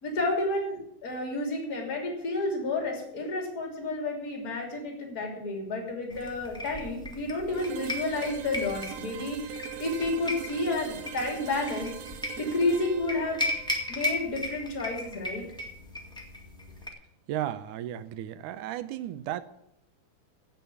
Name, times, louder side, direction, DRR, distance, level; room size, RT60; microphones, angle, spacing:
voice 1, 0.0-11.9 12.4-13.4 13.9-15.4, left 2 dB, 30° left, 3.4 m, -31 dB
sound 1, 6.1-16.9, left 1 dB, ahead, 1.2 m, -37 dB
sound 2, 7.5-15.3, right 8 dB, 70° right, 1.5 m, -42 dB
voice 2, 17.3-19.4, right 12 dB, 85° right, 2.2 m, -34 dB
16.0 x 5.6 x 8.5 m
omnidirectional pair, 3.5 m